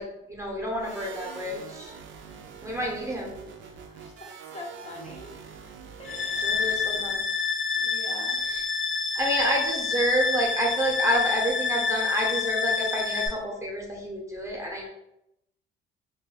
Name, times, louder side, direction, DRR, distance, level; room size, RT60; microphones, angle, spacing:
voice 1, 0.0-1.9 2.6-3.5 6.4-7.2 8.4-8.6 9.1-14.9, right 1 dB, 15° right, -2 dB, 0.8 m, -29 dB
sound 1, 0.8-7.4, right 6 dB, 70° right, 0.4 m, -45 dB
voice 2, 3.6-5.3 6.0-6.5 7.8-8.4, left 1 dB, 35° left, -1 dB, 0.7 m, -44 dB
sound 2, 6.1-13.3, left 5 dB, 75° left, 0.8 m, -28 dB
2.5 x 2.3 x 3.8 m, 0.85 s
cardioid pair, 90°, 20 cm